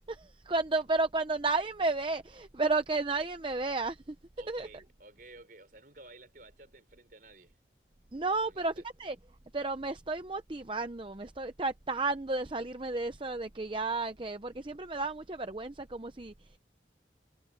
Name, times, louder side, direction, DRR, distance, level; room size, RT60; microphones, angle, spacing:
voice 1, 0.1-4.2 4.5-4.7 8.1-8.7 9.0-9.2 9.5-16.5, right 3 dB, 30° right, 0.7 m, -32 dB
voice 2, 4.4-7.6 8.4-8.8, right 2 dB, 50° right, 5.4 m, -54 dB
head